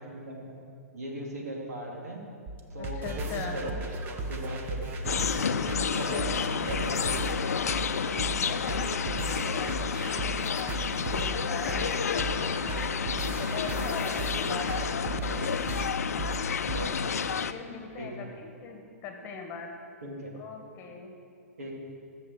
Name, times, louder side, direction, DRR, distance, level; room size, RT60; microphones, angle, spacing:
voice 1, 0.1-0.6 0.9-2.2 2.7-3.3 3.5-3.7 4.1-4.9 5.5-7.4 9.3-9.6 14.4-14.6 16.7-17.2 18.0-18.3 20.0-20.3 21.6-21.8, right 1 dB, 75° right, -2 dB, 3.0 m, -39 dB
sound 1, 2.5-16.9, right 2 dB, 25° right, 1.1 m, -35 dB
voice 2, 2.8-3.6 5.9-6.5 7.5-12.6 13.4-15.2 17.5-19.7 20.3-21.1, left 5 dB, 30° left, 3 dB, 1.7 m, -41 dB
sound 2, 5.0-17.5, left 7 dB, 75° left, 0.5 m, -30 dB
13.5 x 7.3 x 7.3 m, 2.4 s
hypercardioid pair, 120°, 8 cm